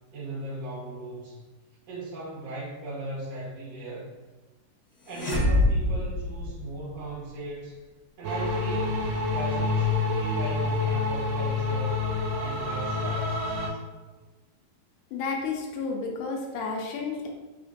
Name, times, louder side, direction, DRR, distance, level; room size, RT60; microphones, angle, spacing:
voice 1, 0.1-1.4 1.9-4.1 5.0-7.8 8.2-9.0 9.3-12.1 12.4-13.8, right 2 dB, 55° right, -7 dB, 2.1 m, -38 dB
sound 1, 5.1-7.1, left 1 dB, 65° left, 0.9 m, -25 dB
sound 2, 8.2-13.7, left 3 dB, 80° right, 2.3 m, -27 dB
voice 2, 15.1-17.3, left 4 dB, 80° left, 0 dB, 1.9 m, -31 dB
5.1 x 3.5 x 2.4 m, 1.2 s
omnidirectional pair, 4.0 m